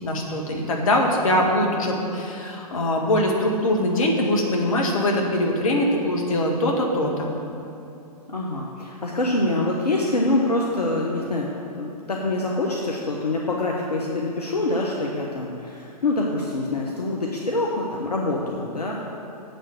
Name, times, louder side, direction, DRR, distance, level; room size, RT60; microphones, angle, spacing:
voice 1, 0.0-7.3, left 1 dB, 60° left, 0 dB, 1.7 m, -22 dB
voice 2, 8.3-11.5 11.8-18.9, left 2 dB, 80° left, -2 dB, 1.1 m, -25 dB
7.8 x 6.6 x 7.9 m, 2.7 s
figure-of-eight pair, 110°, 20 cm